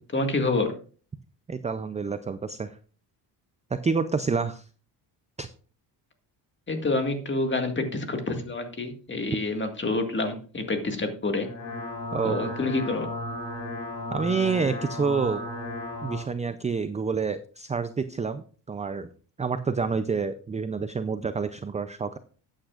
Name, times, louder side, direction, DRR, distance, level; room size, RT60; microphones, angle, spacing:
voice 1, 0.1-0.7 6.7-11.5 12.2-13.1, left 2 dB, 25° left, 5 dB, 1.9 m, -27 dB
voice 2, 1.5-2.7 3.8-4.6 5.4-5.5 12.1-12.5 14.1-15.4 16.0-19.1 19.4-22.2, right 5 dB, 15° right, 11 dB, 0.4 m, -28 dB
sound 1, 11.3-16.2, left 1 dB, 70° left, 3.4 m, -34 dB
12.5 x 9.0 x 2.4 m, 0.40 s
cardioid pair, 115°, 45 cm